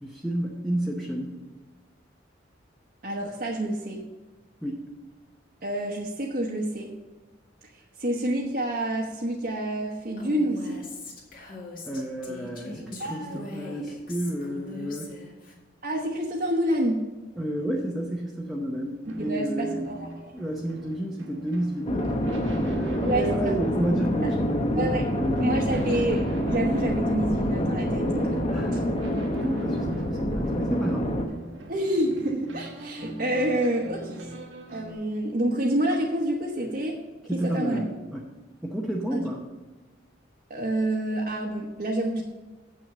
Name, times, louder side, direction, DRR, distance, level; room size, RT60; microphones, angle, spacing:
voice 1, 0.0-1.3 4.6-4.8 11.9-15.1 17.4-19.9 20.3-26.0 28.5-31.1 37.3-38.2 38.6-39.4, right 1 dB, ahead, -2 dB, 0.8 m, -31 dB
voice 2, 3.0-4.0 5.6-6.9 8.0-10.8 12.8-13.4 15.8-17.1 19.2-20.1 23.0-23.6 24.8-25.0 25.4-28.5 31.7-34.3 34.7-37.0 37.3-37.8 39.1-39.3 40.5-42.2, right 1 dB, 50° right, -2 dB, 1.1 m, -28 dB
Female speech woman speaking, 10.2-15.5, left 2 dB, 45° left, 2.1 m, -41 dB
sound 1, 19.0-34.9, right 1 dB, 85° right, 1.5 m, -42 dB
sound 2, 21.9-31.3, equal, 30° left, 0.8 m, -27 dB
7.9 x 6.3 x 6.9 m, 1.2 s
head